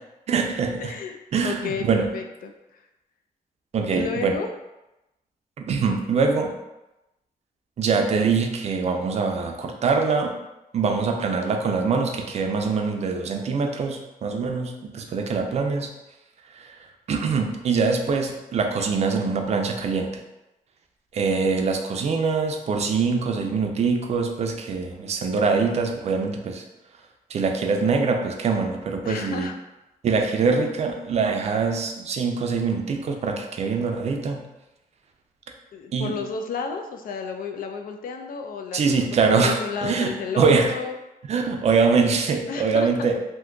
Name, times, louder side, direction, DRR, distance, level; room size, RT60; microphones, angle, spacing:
voice 1, 0.3-0.9 1.3-2.1 3.7-4.4 5.6-6.5 7.8-10.3 10.7-15.9 17.1-20.1 21.1-26.6 27.3-29.5 30.0-34.4 35.9-36.2 38.7-40.7 41.3-43.1, right 5 dB, 45° right, 3 dB, 0.4 m, -23 dB
voice 2, 0.8-1.2 1.4-1.9 2.1-2.8 3.9-4.5 29.0-29.6 30.4-30.6 35.7-38.9 39.2-40.9 42.5-43.1, left 5 dB, 70° left, 4 dB, 0.4 m, -32 dB
2.6 x 2.2 x 3.6 m, 0.95 s
wide cardioid pair, 160°, 15 cm